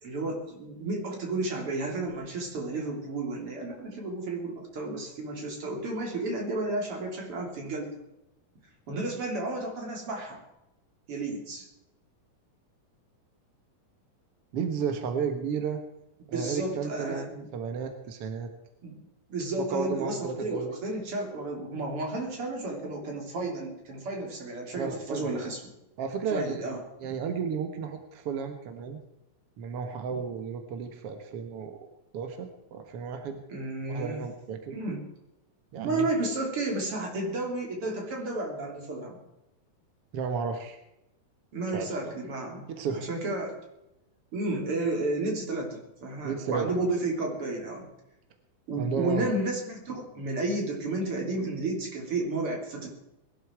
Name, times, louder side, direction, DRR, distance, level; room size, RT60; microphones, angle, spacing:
voice 1, 0.0-8.0 8.9-10.4 11.1-11.7 16.3-17.5 18.8-19.0 19.3-25.6 26.3-26.8 33.5-34.2 34.7-35.0 35.8-39.2 41.5-43.6 44.3-47.9 48.7-52.9, right 2 dB, 40° right, 0 dB, 4.1 m, -32 dB
voice 2, 14.5-15.8 16.3-18.5 19.7-20.8 24.7-25.3 26.0-26.7 27.0-29.0 29.6-31.9 32.1-33.4 33.9-34.8 35.7-36.1 40.1-40.8 41.7-41.9 42.7-43.1 46.2-46.7 48.8-49.3, right 6 dB, 60° right, 6 dB, 1.5 m, -33 dB
21.0 x 12.0 x 4.7 m, 0.91 s
omnidirectional pair, 4.2 m